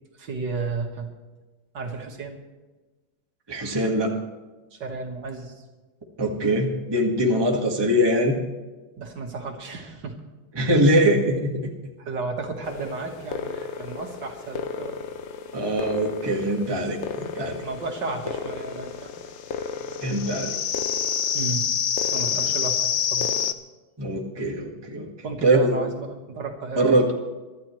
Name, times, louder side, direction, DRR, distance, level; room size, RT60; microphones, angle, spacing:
voice 1, 0.2-1.1 1.7-2.4 4.7-5.6 9.0-10.2 12.0-15.0 17.6-19.3 21.3-21.7 22.1-23.4 25.2-27.1, right 4 dB, 65° right, 2 dB, 2.3 m, -33 dB
voice 2, 3.5-4.1 6.2-8.4 10.5-11.7 15.5-17.6 20.0-20.5 24.0-25.1 25.4-25.8 26.8-27.1, right 1 dB, 15° right, 0 dB, 1.7 m, -22 dB
sound 1, 12.6-23.5, left 8 dB, 70° left, 0.6 m, -29 dB
23.5 x 13.0 x 3.2 m, 1.2 s
omnidirectional pair, 2.1 m